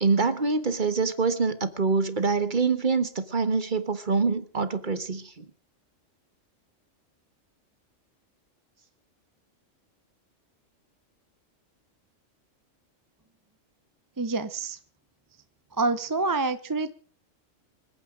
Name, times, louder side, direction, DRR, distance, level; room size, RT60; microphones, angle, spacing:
voice 1, 0.0-5.2, right 4 dB, 40° right, 11 dB, 1.4 m, -25 dB
voice 2, 14.2-14.8 15.7-16.9, right 3 dB, 20° right, 12 dB, 0.6 m, -27 dB
26.0 x 9.1 x 5.0 m, 0.42 s
omnidirectional pair, 1.3 m